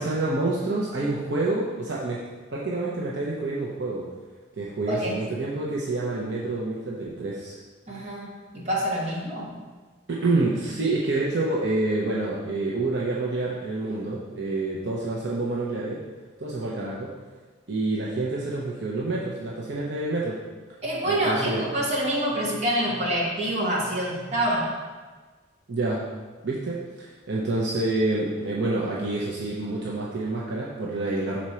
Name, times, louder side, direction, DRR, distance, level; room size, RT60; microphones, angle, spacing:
voice 1, 0.0-2.2 2.5-4.1 4.5-7.6 10.1-16.0 16.4-17.1 17.7-20.4 21.0-21.7 25.7-26.0 26.4-31.4, right 2 dB, 60° right, -5 dB, 0.8 m, -27 dB
voice 2, 7.9-9.5 20.8-24.7, right 1 dB, 35° right, -5 dB, 1.4 m, -26 dB
6.2 x 4.3 x 4.3 m, 1.3 s
head